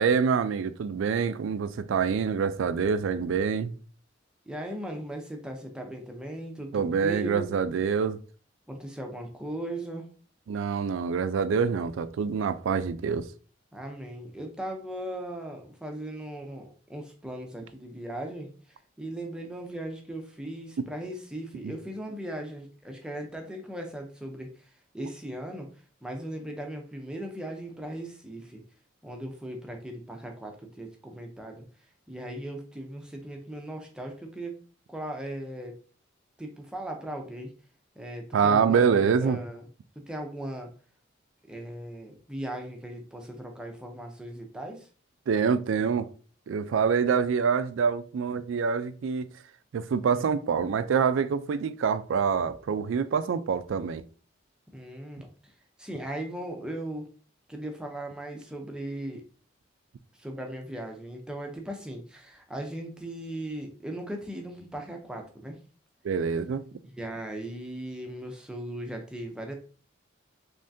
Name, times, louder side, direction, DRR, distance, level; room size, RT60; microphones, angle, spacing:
voice 1, 0.0-3.7 6.7-8.2 10.5-13.3 20.8-20.9 21.6-21.7 38.3-39.4 45.3-46.1 46.5-49.3 49.7-54.0 66.0-66.6, right 6 dB, 80° right, 0.3 m, -26 dB
voice 2, 4.5-7.5 8.7-10.1 13.7-25.7 26.0-28.6 29.0-31.6 32.1-34.6 34.9-35.8 36.4-37.5 38.0-39.7 40.1-40.7 41.5-44.9 45.9-46.0 54.7-55.5 55.8-57.1 57.5-59.2 60.1-65.6 67.0-69.5, right 1 dB, 5° right, 0.5 m, -38 dB
3.5 x 3.2 x 2.6 m
head